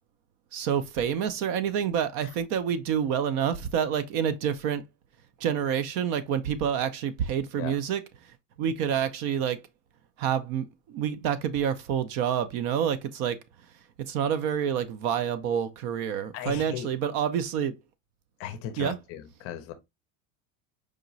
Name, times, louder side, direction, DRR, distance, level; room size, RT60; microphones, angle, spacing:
voice 1, 0.5-4.8 5.4-8.0 8.6-9.6 10.2-13.4 14.1-17.7 18.8-19.0, right 8 dB, 55° right, 0.6 m, -28 dB
voice 2, 16.3-16.9 18.4-19.7, left 10 dB, 40° left, 0.6 m, -37 dB
4.9 x 2.9 x 2.6 m
cardioid pair, 170°, 37 cm